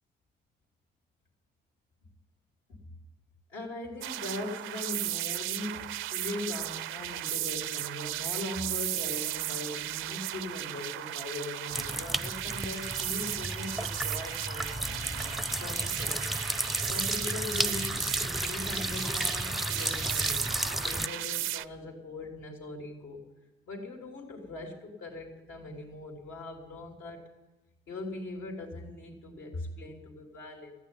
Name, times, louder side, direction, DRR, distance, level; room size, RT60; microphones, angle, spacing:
voice 1, 3.5-14.8 15.6-16.4 16.9-23.2 23.7-27.2 27.9-30.7, left 2 dB, 90° left, 0 dB, 3.5 m, -40 dB
sound 1, 4.0-21.6, right 14 dB, 85° right, 0.5 m, -36 dB
sound 2, 11.7-21.1, right 1 dB, ahead, 0.5 m, -33 dB
sound 3, 12.9-18.0, left 3 dB, 35° left, 0.8 m, -48 dB
15.0 x 9.2 x 9.9 m, 1.1 s
cardioid pair, 90°, 20 cm